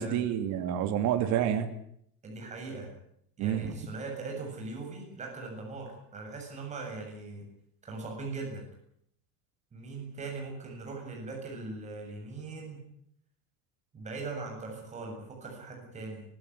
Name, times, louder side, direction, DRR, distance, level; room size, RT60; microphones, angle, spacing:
voice 1, 0.0-1.7 3.4-3.7, right 10 dB, 50° right, 7 dB, 2.8 m, -28 dB
voice 2, 2.2-2.9 3.4-7.4 7.8-8.6 9.7-12.8 13.9-16.2, right 3 dB, 20° right, 0 dB, 7.7 m, -40 dB
24.5 x 16.0 x 9.6 m, 0.71 s
cardioid pair, 180°, 38 cm